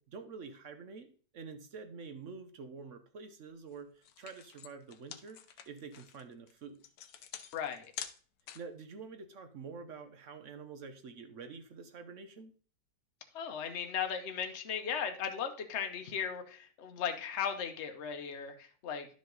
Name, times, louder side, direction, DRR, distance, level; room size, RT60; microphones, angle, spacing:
voice 1, 0.0-5.4 5.7-6.8 8.5-12.5, right 5 dB, 55° right, 9 dB, 0.9 m, -47 dB
sound 1, 3.6-3.7 4.0-8.8, left 9 dB, 70° left, 1.3 m, -47 dB
voice 2, 7.5-7.9 13.3-19.1, left 7 dB, 45° left, 6 dB, 1.0 m, -37 dB
11.5 x 5.2 x 3.9 m, 0.42 s
omnidirectional pair, 1.9 m